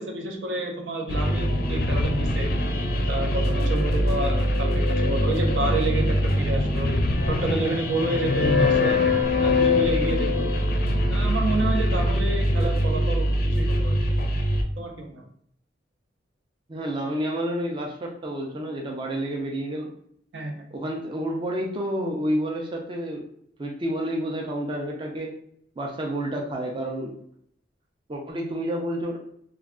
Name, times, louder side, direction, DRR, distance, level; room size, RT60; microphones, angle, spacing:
voice 1, 0.0-2.5 3.1-7.0 7.3-9.0 9.4-10.5 11.1-14.0 14.8-15.2 20.3-20.6, right 2 dB, 80° right, 2 dB, 0.6 m, -29 dB
sound 1, 1.1-14.6, left 1 dB, 55° left, 0.4 m, -23 dB
voice 2, 16.7-19.9 20.7-23.2 23.6-25.3 25.8-27.2 28.1-29.2, right 1 dB, 25° right, 0 dB, 0.4 m, -29 dB
2.3 x 2.3 x 3.5 m, 0.68 s
head